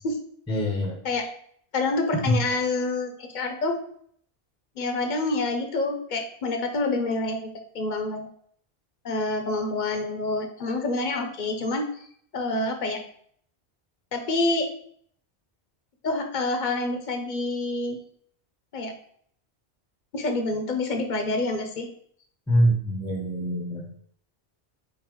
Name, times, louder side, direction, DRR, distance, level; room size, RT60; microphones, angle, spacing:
voice 1, 0.5-1.0 2.3-2.4 22.5-23.9, equal, 5° left, 1 dB, 0.6 m, -24 dB
voice 2, 1.7-3.8 4.8-8.3 9.0-12.0 12.3-13.0 14.1-14.7 16.0-18.0 18.7-18.9 20.1-21.9, left 2 dB, 50° left, 5 dB, 0.8 m, -27 dB
4.3 x 3.8 x 3.0 m, 0.62 s
omnidirectional pair, 1.1 m